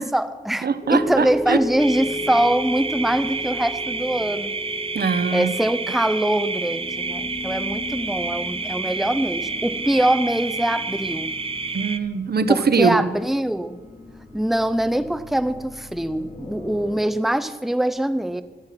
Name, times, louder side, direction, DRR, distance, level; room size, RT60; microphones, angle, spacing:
voice 1, 0.0-4.5 5.3-11.3 12.5-13.8 14.3-18.4, right 1 dB, ahead, 12 dB, 0.8 m, -23 dB
voice 2, 0.6-1.6 4.9-5.5 11.7-13.1, right 5 dB, 65° right, 13 dB, 0.9 m, -22 dB
sound 1, 0.8-17.0, left 2 dB, 40° left, 2.4 m, -37 dB
sound 2, 1.8-12.0, right 3 dB, 30° right, 0.8 m, -29 dB
18.0 x 12.5 x 5.9 m, 1.3 s
wide cardioid pair, 95°, 18 cm